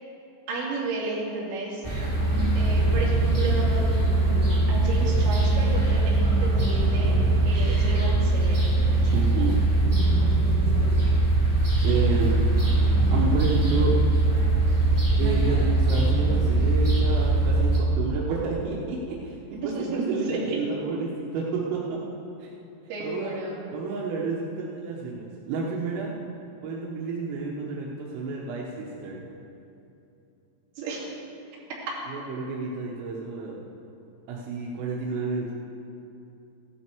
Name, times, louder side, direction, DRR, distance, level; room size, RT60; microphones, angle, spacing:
voice 1, 0.5-1.8 2.6-3.8 4.7-7.1 7.4-9.0 19.8-20.6 22.9-23.6 30.8-31.0, right 2 dB, 65° right, -6 dB, 4.9 m, -32 dB
sound 1, 1.8-17.8, right 2 dB, 5° right, 2.6 m, -21 dB
voice 2, 9.1-9.7 10.5-10.6 11.8-12.5 13.1-14.0 15.2-22.0 22.4-22.5 23.0-23.3 23.7-26.1 26.6-29.2 32.1-33.6 34.3-35.5, right 4 dB, 85° right, -4 dB, 3.8 m, -30 dB
15.5 x 12.0 x 4.6 m, 2.8 s
omnidirectional pair, 5.7 m